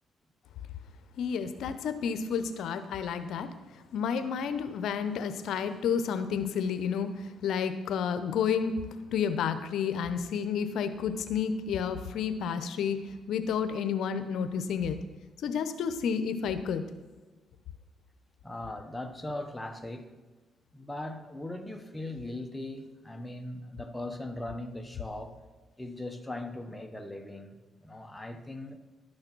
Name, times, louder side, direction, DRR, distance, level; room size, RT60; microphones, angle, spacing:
voice 1, 1.2-3.5 3.9-7.1 7.4-8.7 9.1-13.0 13.3-15.0 15.4-16.8, left 7 dB, 75° left, 0.7 m, -30 dB
voice 2, 18.4-20.1 20.7-25.4 25.8-27.5 27.8-28.8, left 1 dB, 10° left, 1.0 m, -39 dB
12.0 x 6.5 x 6.0 m
cardioid pair, 90°, 0 cm